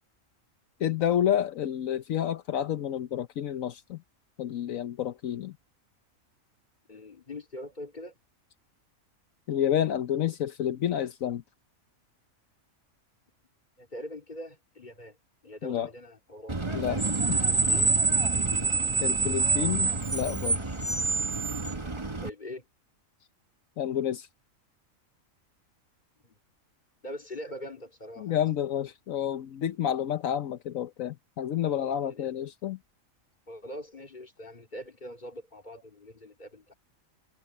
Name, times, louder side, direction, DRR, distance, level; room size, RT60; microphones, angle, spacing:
voice 1, 0.8-4.0 4.4-5.6 9.5-11.4 15.6-15.9 16.7-17.4 19.0-20.6 23.8-24.3 28.2-32.8, left 10 dB, 80° left, 1.2 m, -29 dB
voice 2, 6.9-8.1 13.8-15.2 15.4-17.0 17.4-17.9 22.2-22.6 26.2-26.3 27.0-28.4 31.6-32.3 33.5-36.7, left 1 dB, 35° left, 3.2 m, -43 dB
Screech, 16.5-22.3, right 3 dB, 20° right, 1.2 m, -26 dB
open air
omnidirectional pair, 1.4 m